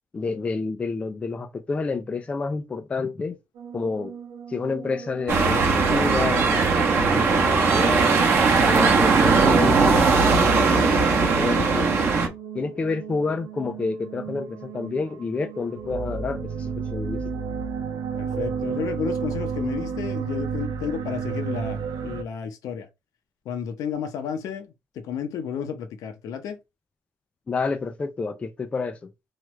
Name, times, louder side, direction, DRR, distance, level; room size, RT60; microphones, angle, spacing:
voice 1, 0.1-3.4 3.7-4.1 4.5-8.1 8.6-11.9 12.5-17.2 27.5-29.1, left 4 dB, 20° left, 0.3 m, -29 dB
sound 1, 3.6-22.2, right 6 dB, 65° right, 0.5 m, -34 dB
sound 2, 5.3-12.3, right 4 dB, 35° right, 0.9 m, -19 dB
voice 2, 18.1-22.9 23.5-24.7 25.0-26.6, left 7 dB, 65° left, 0.8 m, -32 dB
3.1 x 2.3 x 3.1 m
cardioid pair, 150°, 6 cm